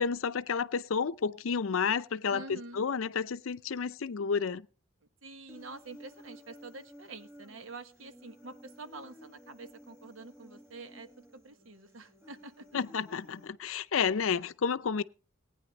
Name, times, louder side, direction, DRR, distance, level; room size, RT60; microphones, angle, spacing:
voice 1, 0.0-4.7 12.7-15.0, left 6 dB, 75° left, 0.5 m, -31 dB
voice 2, 2.3-2.8 5.2-12.7, right 3 dB, 75° right, 1.2 m, -47 dB
Human voice, 5.5-13.5, equal, 15° right, 1.6 m, -55 dB
19.5 x 9.3 x 4.0 m
head